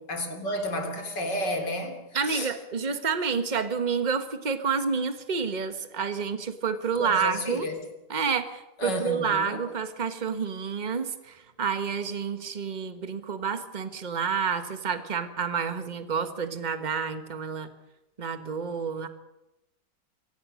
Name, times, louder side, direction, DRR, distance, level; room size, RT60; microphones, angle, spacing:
voice 1, 0.1-2.0 2.3-2.5 7.0-7.8 8.8-9.6, left 1 dB, 70° left, 4 dB, 3.4 m, -31 dB
voice 2, 2.1-7.7 8.1-17.7 18.2-19.1, right 6 dB, 25° right, 9 dB, 1.4 m, -29 dB
24.0 x 17.5 x 6.4 m, 0.93 s
omnidirectional pair, 1.9 m